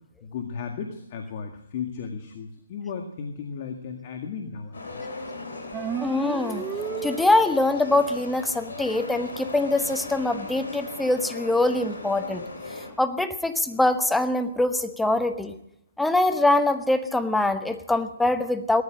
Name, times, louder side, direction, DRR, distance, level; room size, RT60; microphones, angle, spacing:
voice 1, 0.2-5.0, left 6 dB, 40° left, 4 dB, 1.9 m, -35 dB
sound 1, 4.7-12.9, left 3 dB, 70° left, 6.2 m, -37 dB
sound 2, 5.7-7.7, right 9 dB, 15° right, 0.5 m, -33 dB
voice 2, 6.0-6.6 7.0-12.4 12.7-15.5 16.0-18.8, left 2 dB, 5° left, 9 dB, 0.9 m, -23 dB
18.0 x 13.5 x 5.1 m, 0.79 s
hypercardioid pair, 145°, 0 cm